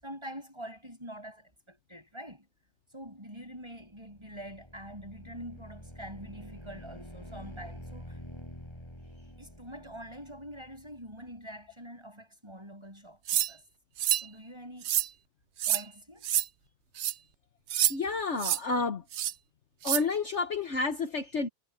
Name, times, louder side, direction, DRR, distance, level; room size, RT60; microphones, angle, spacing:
voice 1, 0.0-2.5 2.9-8.2 9.4-13.6 14.2-14.9 15.6-16.3, equal, 15° right, 8.0 m, -45 dB
sound 1, 3.7-11.4, equal, 15° left, 7.3 m, -48 dB
sound 2, 13.3-13.5 14.0-14.3 14.8-15.1 15.6-15.8 16.2-16.4 17.0-17.1 17.7-17.9 18.4-18.6 19.1-19.3 19.8-20.0, right 12 dB, 65° right, 0.6 m, -27 dB
voice 2, 17.9-19.0 19.8-21.5, left 4 dB, 50° left, 1.4 m, -30 dB
omnidirectional pair, 1.7 m